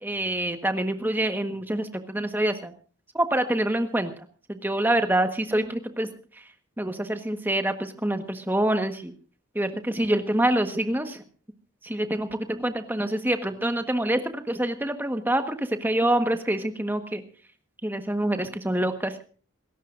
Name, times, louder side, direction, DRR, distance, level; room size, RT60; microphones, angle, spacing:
voice 1, 0.0-2.7 3.1-4.1 4.5-6.1 6.8-9.1 9.5-11.2 11.8-17.2 17.8-19.2, right 1 dB, 10° right, 7 dB, 1.4 m, -26 dB
27.5 x 14.0 x 2.6 m, 0.39 s
head